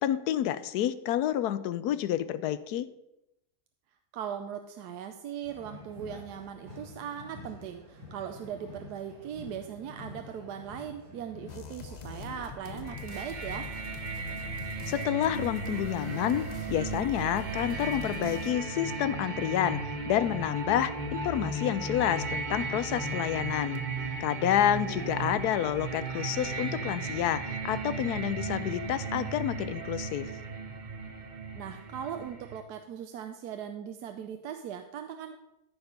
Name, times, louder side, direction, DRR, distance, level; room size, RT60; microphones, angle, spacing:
voice 1, 0.0-2.9 14.9-23.8 24.2-30.3, left 11 dB, 75° left, 14 dB, 1.1 m, -29 dB
voice 2, 4.1-13.7 24.8-25.4 31.6-35.4, right 8 dB, 80° right, 7 dB, 1.2 m, -39 dB
sound 1, 5.4-17.0, left 3 dB, 60° right, 3.6 m, -48 dB
sound 2, 11.5-18.5, left 4 dB, 60° left, 0.4 m, -45 dB
sound 3, 12.9-32.6, right 3 dB, 40° right, 0.8 m, -36 dB
14.0 x 4.8 x 5.3 m, 0.87 s
omnidirectional pair, 1.7 m